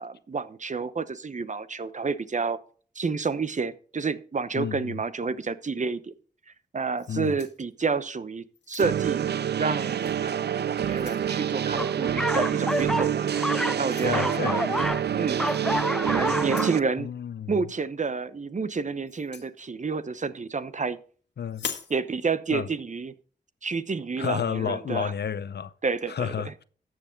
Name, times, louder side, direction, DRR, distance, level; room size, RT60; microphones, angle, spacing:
voice 1, 0.0-2.6 2.9-6.1 6.7-9.2 9.6-14.8 15.2-15.4 16.0-17.1 17.5-21.0 21.9-23.1 23.6-25.1 25.8-26.5, right 4 dB, 45° right, 0.9 m, -30 dB
voice 2, 4.5-4.9 7.1-7.3 14.0-14.7 17.0-17.5 21.4-21.6 22.5-22.7 24.2-25.7 26.1-26.6, left 8 dB, 70° left, 0.7 m, -31 dB
sound 1, 7.0-8.1 8.5-9.2 10.0-10.2 10.6-11.3 12.7-12.9 13.8-14.2 15.5-15.6 16.4-16.8 19.1-19.5 21.5-22.0, left 7 dB, 85° left, 1.7 m, -41 dB
sound 2, 8.8-16.8, right 9 dB, 70° right, 0.5 m, -27 dB
sound 3, 11.8-15.1 15.3-16.8, equal, 5° left, 0.4 m, -29 dB
13.5 x 7.7 x 3.9 m
cardioid pair, 55°, 18 cm